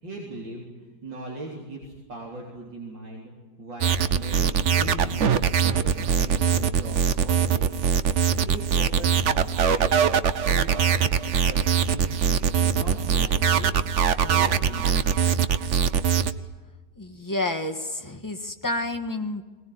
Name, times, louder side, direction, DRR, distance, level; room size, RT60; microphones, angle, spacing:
voice 1, 0.0-10.1 10.5-13.7 14.2-15.1, right 1 dB, 75° right, -2 dB, 4.4 m, -39 dB
sound 1, 3.8-16.3, right 7 dB, 50° right, 0.9 m, -22 dB
voice 2, 17.0-19.4, left 2 dB, 10° left, 5 dB, 1.6 m, -29 dB
21.5 x 20.0 x 9.5 m, 1.3 s
omnidirectional pair, 2.0 m